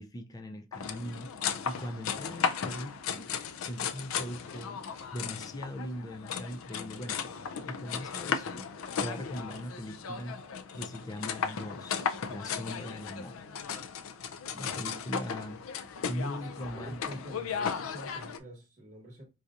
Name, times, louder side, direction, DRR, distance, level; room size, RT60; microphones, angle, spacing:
voice 1, 0.0-1.3 1.7-3.3 3.6-4.8 5.1-7.2 7.7-8.7 9.0-10.4 10.7-12.0 12.3-13.4 14.5-15.6 16.0-17.0, equal, 20° left, 0.4 m, -40 dB
sound 1, 0.7-18.4, left 6 dB, 90° left, 0.4 m, -36 dB
voice 2, 16.7-19.2, right 1 dB, 40° right, 1.0 m, -46 dB
4.5 x 2.7 x 2.4 m
head